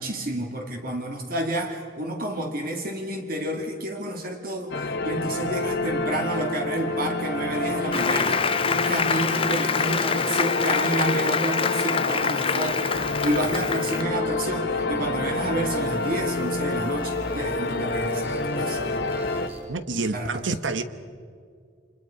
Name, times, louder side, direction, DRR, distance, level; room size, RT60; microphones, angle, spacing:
voice 1, 0.0-18.8 20.1-20.4, right 1 dB, 50° right, 2.2 m, -30 dB
sound 1, 4.7-19.5, left 2 dB, 60° left, 1.5 m, -28 dB
Applause, 7.9-14.0, left 6 dB, 30° left, 0.6 m, -26 dB
sound 2, 12.7-19.7, right 1 dB, 30° right, 4.8 m, -42 dB
voice 2, 19.7-20.8, right 3 dB, 80° right, 1.2 m, -28 dB
30.0 x 26.0 x 5.1 m
head